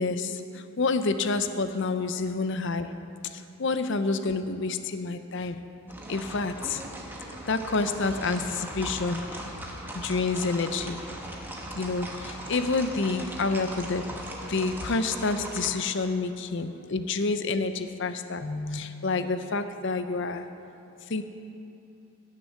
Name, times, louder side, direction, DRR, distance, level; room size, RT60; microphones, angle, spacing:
voice 1, 0.0-2.9 3.2-5.6 6.1-6.8 7.5-9.5 9.9-11.0 11.8-20.5 21.1-21.2, left 3 dB, 55° left, 10 dB, 0.6 m, -28 dB
sound 1, 5.9-15.7, right 1 dB, 10° right, 1.1 m, -39 dB
16.5 x 6.9 x 6.4 m, 2.7 s
head